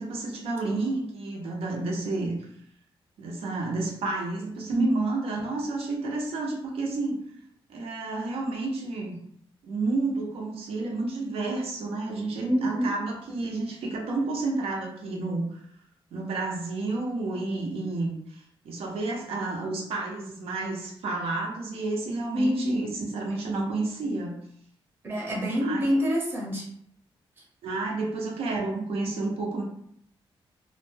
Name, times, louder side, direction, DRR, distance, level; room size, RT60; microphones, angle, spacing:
voice 1, 0.0-2.4 3.2-7.2 7.7-9.2 9.6-15.6 16.1-24.4 25.6-26.0 27.6-29.6, right 3 dB, 85° right, -1 dB, 0.6 m, -30 dB
voice 2, 12.4-12.9 22.3-22.8 25.0-26.7, equal, 25° right, -3 dB, 0.7 m, -26 dB
2.5 x 2.1 x 3.2 m, 0.68 s
wide cardioid pair, 165°, 10 cm